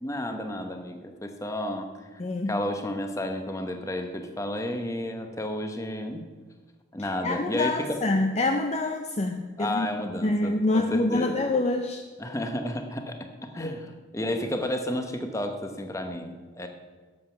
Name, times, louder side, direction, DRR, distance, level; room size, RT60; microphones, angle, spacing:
voice 1, 0.0-2.2 2.5-6.2 6.9-8.0 9.6-11.4 12.2-16.7, left 1 dB, 15° left, 6 dB, 0.9 m, -32 dB
voice 2, 2.2-2.5 7.2-9.9 10.2-12.0 13.6-13.8, left 2 dB, 30° left, 5 dB, 0.5 m, -26 dB
11.5 x 7.4 x 5.8 m, 1.4 s
head